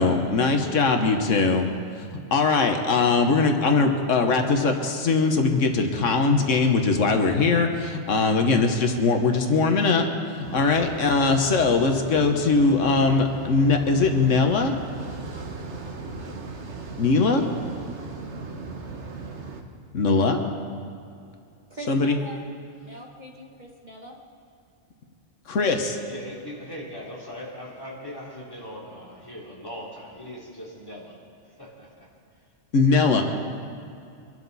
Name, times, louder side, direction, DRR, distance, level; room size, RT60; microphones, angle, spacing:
voice 1, 0.0-1.7 2.1-10.1 10.4-14.7 17.0-17.4 19.9-20.4 21.9-22.2 25.5-26.0 32.7-33.2, left 4 dB, 80° left, 5 dB, 1.4 m, -21 dB
sound 1, 10.4-19.6, right 3 dB, 65° right, 1.5 m, -37 dB
voice 2, 21.7-22.4 22.8-24.2, right 1 dB, 40° right, 0 dB, 1.5 m, -41 dB
voice 3, 26.1-31.1 31.6-32.1, equal, 20° left, -4 dB, 3.3 m, -39 dB
24.0 x 12.0 x 4.1 m, 2.5 s
omnidirectional pair, 1.3 m